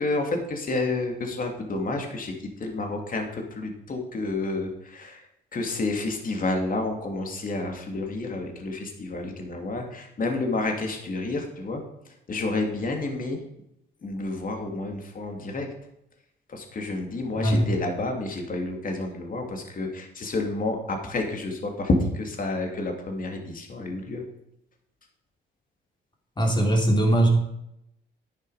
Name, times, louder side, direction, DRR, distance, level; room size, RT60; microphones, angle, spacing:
voice 1, 0.0-13.4 14.0-15.7 16.5-24.2, left 2 dB, 45° left, 3 dB, 2.9 m, -30 dB
voice 2, 26.4-27.4, right 1 dB, 25° left, 1 dB, 3.6 m, -20 dB
10.5 x 10.5 x 5.0 m, 0.80 s
cardioid pair, 90°, 20 cm